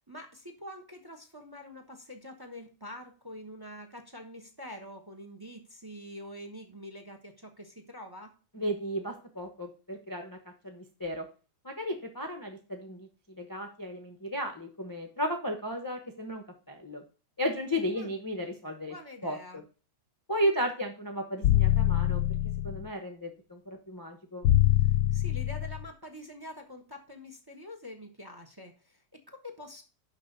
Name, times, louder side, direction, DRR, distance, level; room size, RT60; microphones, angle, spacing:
voice 1, 0.1-8.3 17.9-18.1 18.9-19.6 25.1-29.8, equal, 15° right, 6 dB, 1.0 m, -46 dB
voice 2, 8.5-11.3 11.6-17.0 17.4-18.9 19.2-19.4 20.3-22.4 22.6-24.5, equal, 15° left, 2 dB, 0.7 m, -34 dB
sound 1, 21.4-22.9 24.4-25.9, left 13 dB, 80° left, 1.2 m, -24 dB
6.5 x 5.6 x 6.8 m, 0.36 s
omnidirectional pair, 1.8 m